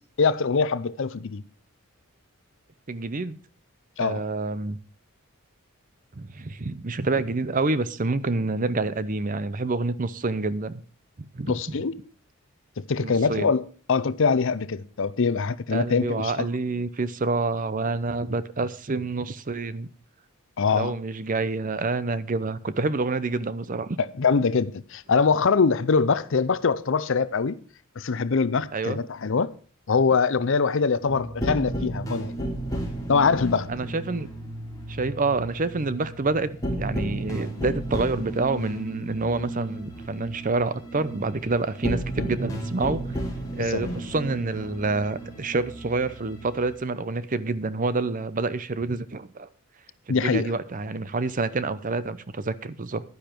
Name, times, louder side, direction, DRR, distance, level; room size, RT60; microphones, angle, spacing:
voice 1, 0.2-1.4 4.0-4.2 11.5-12.0 12.8-16.5 20.6-20.9 24.0-27.6 28.0-29.5 29.9-32.3 33.1-33.7 43.7-43.8 50.1-50.5, left 5 dB, 60° left, 0.6 m, -23 dB
voice 2, 2.9-3.3 4.0-4.8 6.1-10.8 11.2-11.9 13.0-13.5 15.7-19.9 20.7-24.0 28.7-29.0 33.7-34.3 34.9-43.1 43.5-49.5 50.1-53.0, right 3 dB, 40° right, 0.6 m, -28 dB
sound 1, 31.0-46.7, right 1 dB, 15° left, 3.1 m, -33 dB
11.0 x 10.0 x 4.5 m
head